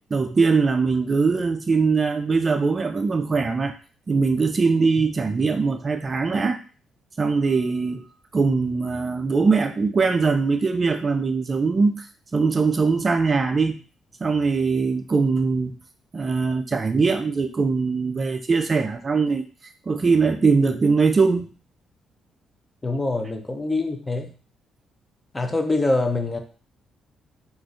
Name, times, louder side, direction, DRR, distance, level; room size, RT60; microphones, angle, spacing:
voice 1, 0.1-3.7 4.1-6.6 7.2-8.1 8.3-12.1 12.3-13.8 14.2-15.7 16.1-21.5, right 4 dB, 35° right, 7 dB, 0.3 m, -21 dB
voice 2, 22.8-24.3 25.3-26.4, left 2 dB, 20° left, 6 dB, 0.5 m, -24 dB
3.8 x 2.4 x 2.4 m, 0.38 s
cardioid pair, 90°, 0 cm